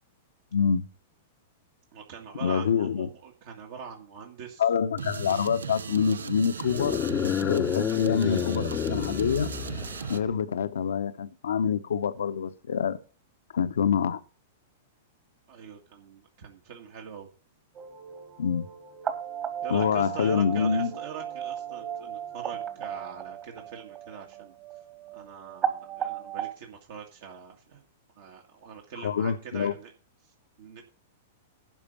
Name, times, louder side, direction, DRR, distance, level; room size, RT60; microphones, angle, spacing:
voice 1, 0.5-0.9 2.4-3.1 4.6-9.5 10.1-13.0 13.5-14.2 18.4-18.7 19.7-20.9 29.0-29.7, left 7 dB, 70° left, 0.9 m, -26 dB
voice 2, 1.9-4.6 15.5-17.3 19.6-24.5 25.1-27.8 28.2-29.9 30.2-30.8, right 7 dB, 55° right, 1.9 m, -43 dB
sound 1, 5.0-10.2, right 6 dB, 80° right, 0.6 m, -36 dB
sound 2, 6.6-10.3, left 10 dB, 30° left, 0.5 m, -30 dB
sound 3, 17.7-26.5, right 9 dB, 30° right, 1.8 m, -36 dB
12.0 x 5.1 x 7.0 m
figure-of-eight pair, 105°, 0 cm